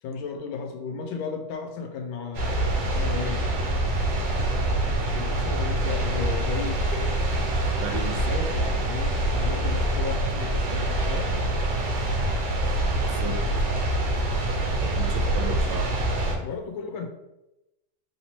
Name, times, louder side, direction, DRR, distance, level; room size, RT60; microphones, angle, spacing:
voice 1, 0.0-3.4 5.1-7.0 8.2-11.4 16.4-17.1, left 5 dB, 90° left, 4 dB, 1.4 m, -35 dB
sound 1, 2.3-16.3, right 1 dB, 60° right, 1.4 m, -25 dB
voice 2, 7.8-8.3 13.0-13.5 14.8-15.9, right 4 dB, 85° right, 5 dB, 1.4 m, -34 dB
3.6 x 2.9 x 4.2 m, 0.93 s
omnidirectional pair, 2.1 m